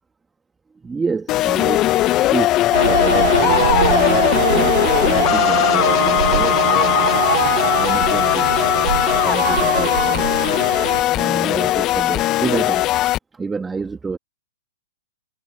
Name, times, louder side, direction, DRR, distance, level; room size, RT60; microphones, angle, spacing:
voice 1, 0.8-2.5 2.8-7.0 7.7-10.6 11.1-12.8 13.3-14.2, right 4 dB, 10° right, 2.8 m, -28 dB
sound 1, 1.3-13.2, left 15 dB, 30° left, 1.0 m, -18 dB
sound 2, 2.7-11.0, right 8 dB, 75° right, 2.7 m, -22 dB
hypercardioid pair, 125°, 0 cm